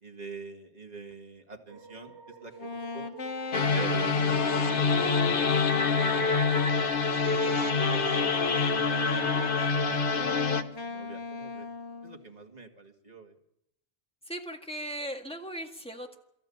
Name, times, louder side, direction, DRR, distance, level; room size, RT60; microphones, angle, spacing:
voice 1, 0.0-3.1 3.7-6.6 7.1-8.8 9.1-10.4 10.8-11.7 12.0-13.4, right 3 dB, 40° right, 3 dB, 2.3 m, -45 dB
sound 1, 1.7-8.8, right 4 dB, 85° right, 2.4 m, -49 dB
Wind instrument woodwind instrument, 2.5-6.7 7.2-8.6 9.0-12.3, left 3 dB, 80° left, 1.7 m, -36 dB
sound 2, 3.5-10.6, left 4 dB, 55° left, 1.1 m, -26 dB
voice 2, 14.3-16.2, right 1 dB, 5° left, 3 dB, 1.8 m, -38 dB
23.5 x 13.5 x 8.7 m, 0.81 s
omnidirectional pair, 1.1 m